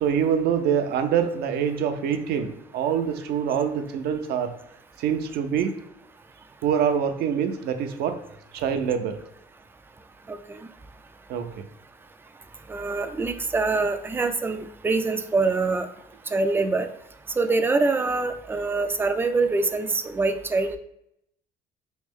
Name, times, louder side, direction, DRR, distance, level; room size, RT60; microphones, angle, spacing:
voice 1, 0.0-4.5 5.0-5.7 6.6-8.2 8.5-9.2 11.3-11.5, right 8 dB, 70° right, 7 dB, 0.5 m, -25 dB
voice 2, 10.3-10.7 12.7-15.9 16.3-16.9 17.4-20.8, right 3 dB, 15° right, 8 dB, 0.3 m, -24 dB
3.3 x 3.2 x 3.6 m, 0.78 s
cardioid pair, 110°, 17 cm